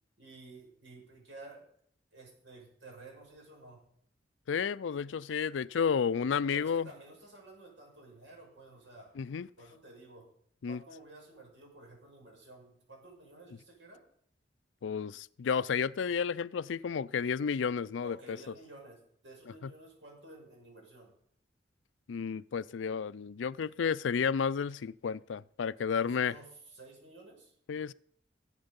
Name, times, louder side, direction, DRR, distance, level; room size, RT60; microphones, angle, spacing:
voice 1, 0.2-1.6 2.1-3.8 6.5-9.1 9.6-10.3 10.7-14.0 18.0-21.1 25.9-27.5, right 2 dB, 85° right, 5.9 m, -53 dB
voice 2, 4.5-6.9 9.2-9.5 10.6-10.8 14.8-18.4 19.6-19.7 22.1-26.3 27.7-27.9, left 6 dB, 90° left, 0.4 m, -32 dB
19.0 x 8.1 x 5.3 m
head